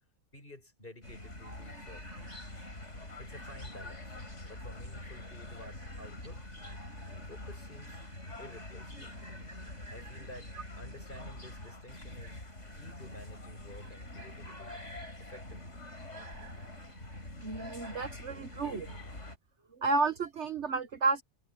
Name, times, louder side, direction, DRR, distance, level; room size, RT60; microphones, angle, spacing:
voice 1, 0.3-2.1 3.2-4.2 4.5-6.4 7.3-8.0 8.4-9.2 9.9-12.4 12.8-14.8 15.2-15.8, left 1 dB, 40° left, 7.0 m, -51 dB
sound 1, 1.0-19.4, left 1 dB, 55° left, 5.6 m, -45 dB
voice 2, 17.4-19.0 19.8-21.2, right 3 dB, 55° right, 1.4 m, -31 dB
omnidirectional pair, 1.4 m